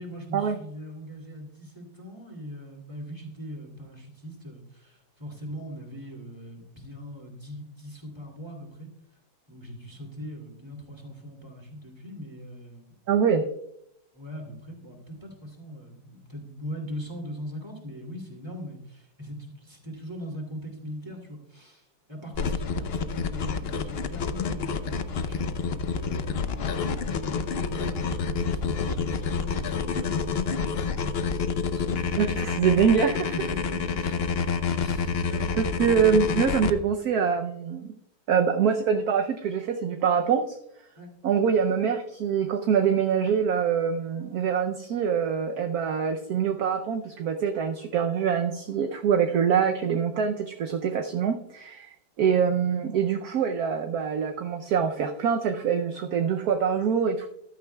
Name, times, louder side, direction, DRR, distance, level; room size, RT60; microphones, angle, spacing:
voice 1, 0.0-8.9 9.5-13.0 14.1-26.5 27.1-32.2 33.3-34.2 34.8-35.5 41.0-41.1, equal, 15° right, 0 dB, 2.7 m, -41 dB
voice 2, 13.1-13.5 32.2-33.3 35.6-37.9 38.3-40.6 41.2-57.3, right 7 dB, 65° right, 5 dB, 1.1 m, -24 dB
sound 1, 22.3-36.7, left 5 dB, 70° left, 0.5 m, -28 dB
14.5 x 12.5 x 2.3 m, 0.77 s
omnidirectional pair, 2.0 m